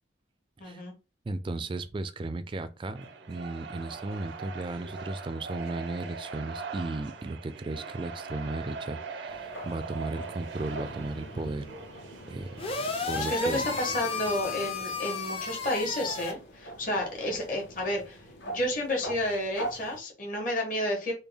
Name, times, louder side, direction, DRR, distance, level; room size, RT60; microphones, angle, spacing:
voice 1, 0.6-0.9 13.1-18.2 18.5-21.1, left 1 dB, 50° left, 1.4 m, -31 dB
voice 2, 1.3-11.7 12.3-12.5 13.1-13.7, right 2 dB, 30° right, 0.3 m, -35 dB
sound 1, 2.9-14.0, right 4 dB, 85° right, 0.5 m, -42 dB
sound 2, 9.3-20.0, right 1 dB, 75° left, 1.0 m, -44 dB
sound 3, 12.6-16.3, left 4 dB, 30° left, 0.5 m, -33 dB
3.5 x 2.2 x 3.4 m
head